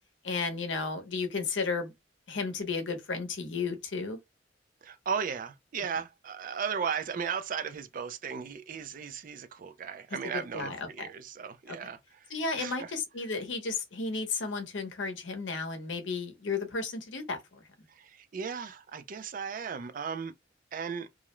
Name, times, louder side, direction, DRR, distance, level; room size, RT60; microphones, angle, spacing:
voice 1, 0.2-1.9 2.3-4.2 10.5-11.1 11.7-11.8 12.3-17.4, left 4 dB, 75° left, 0.7 m, -33 dB
voice 2, 4.8-12.9 17.9-20.3 20.7-21.1, right 6 dB, 45° right, 0.4 m, -36 dB
2.4 x 2.0 x 3.0 m
head